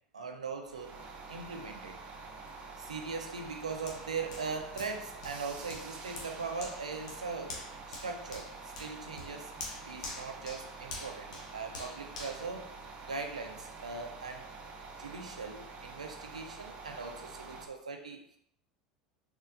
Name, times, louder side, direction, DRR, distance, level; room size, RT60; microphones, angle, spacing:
voice 1, 0.1-2.0 2.8-9.5 9.8-12.8 13.1-14.5 15.0-18.3, right 4 dB, 85° right, 5 dB, 0.4 m, -40 dB
sound 1, 0.6-17.7, right 3 dB, 35° right, 0.6 m, -47 dB
Hands, 3.9-13.4 13.8-14.0, left 2 dB, 65° left, 0.8 m, -47 dB
4.1 x 2.5 x 2.5 m, 0.67 s
figure-of-eight pair, 75°, 4 cm